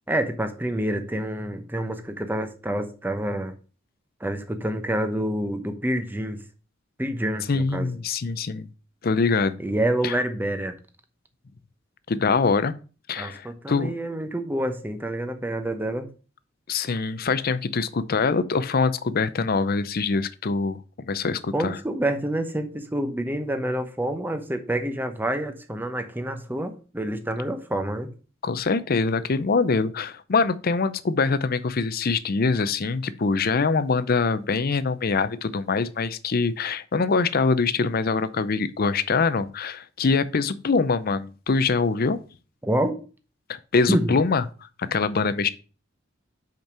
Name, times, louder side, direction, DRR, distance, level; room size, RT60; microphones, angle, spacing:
voice 1, 0.1-3.5 4.2-6.4 7.0-7.9 9.6-10.8 13.2-16.1 21.5-28.1 42.6-43.0 43.9-44.2, right 1 dB, 10° right, 0.9 m, -27 dB
voice 2, 7.5-8.7 9.0-9.6 10.0-10.2 12.1-12.7 13.1-13.9 16.7-21.8 28.4-42.2 43.5-44.4 44.8-45.5, left 4 dB, 50° left, 0.6 m, -24 dB
5.3 x 5.2 x 6.0 m
head